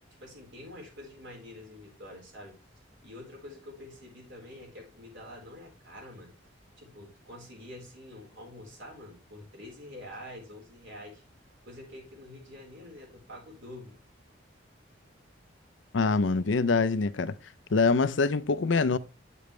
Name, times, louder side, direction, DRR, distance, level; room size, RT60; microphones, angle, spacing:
voice 1, 0.2-2.5 3.0-6.3 6.8-11.2 11.6-14.0, left 1 dB, 65° right, 4.2 m, -46 dB
voice 2, 15.9-17.3 17.7-19.0, left 4 dB, 75° left, 0.6 m, -24 dB
9.2 x 6.9 x 3.2 m
head